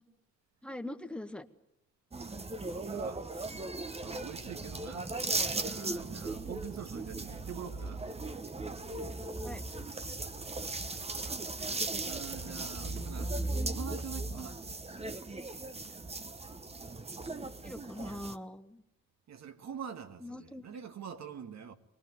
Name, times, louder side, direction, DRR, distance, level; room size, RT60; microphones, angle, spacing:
voice 1, 0.6-1.5 9.4-9.6 17.6-18.8 20.2-20.6, left 1 dB, 5° left, 1.6 m, -42 dB
sound 1, 2.1-18.4, right 2 dB, 20° right, 1.3 m, -37 dB
voice 2, 2.3-3.7 4.0-5.1 5.6-8.0 12.0-14.6 19.3-21.8, right 7 dB, 60° right, 2.2 m, -45 dB
24.5 x 19.0 x 9.6 m
cardioid pair, 90°, 30 cm